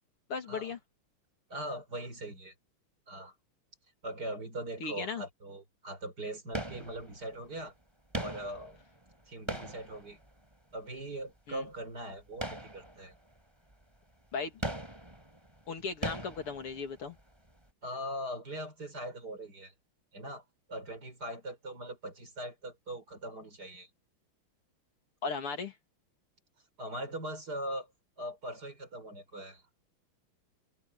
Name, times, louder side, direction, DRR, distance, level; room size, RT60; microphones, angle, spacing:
voice 1, 0.3-0.8 4.8-5.2 11.5-11.6 14.3-14.6 15.7-17.2 25.2-25.8, left 5 dB, 80° left, 3.6 m, -36 dB
voice 2, 1.5-2.5 3.1-3.3 4.0-7.7 8.2-8.8 9.3-10.2 10.7-13.1 17.8-19.7 20.1-20.4 20.7-23.9 26.8-27.9 28.2-29.6, right 1 dB, 45° right, 5.8 m, -41 dB
sound 1, 6.5-7.4 8.1-10.7 12.3-13.3 13.7-13.8 14.6-17.2 17.4-17.5, right 1 dB, 10° right, 5.3 m, -40 dB
omnidirectional pair, 2.4 m